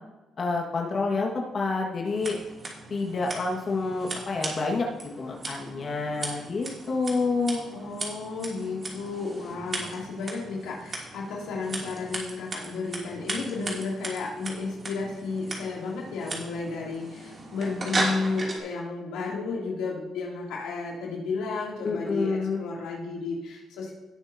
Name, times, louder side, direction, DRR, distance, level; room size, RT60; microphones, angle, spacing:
voice 1, 0.4-2.4 2.9-4.9 5.2-7.6 21.8-22.6, left 3 dB, 45° left, -1 dB, 1.8 m, -28 dB
Scissors, 2.1-18.6, right 2 dB, 35° right, 2.9 m, -37 dB
voice 2, 7.7-23.9, left 4 dB, 90° left, -3 dB, 2.9 m, -32 dB
18.5 x 6.9 x 2.9 m, 1.0 s
cardioid pair, 90°, 0 cm